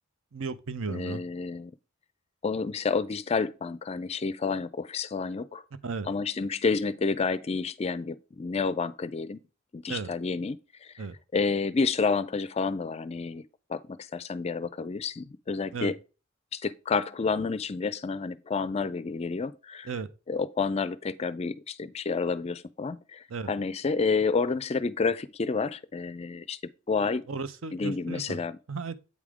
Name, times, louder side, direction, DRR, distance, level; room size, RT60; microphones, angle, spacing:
voice 1, 0.3-1.2 5.8-6.1 9.9-10.1 11.0-11.2 15.7-15.9 19.8-20.1 23.3-23.5 27.0-28.4 28.7-28.9, right 4 dB, 75° right, 0.6 m, -35 dB
voice 2, 0.9-1.7 2.4-5.6 6.1-9.4 9.7-10.9 11.3-13.4 13.7-15.9 16.5-19.9 20.3-26.6 26.9-27.2 27.7-28.6, left 4 dB, 30° left, 0.3 m, -29 dB
8.5 x 3.5 x 4.9 m
head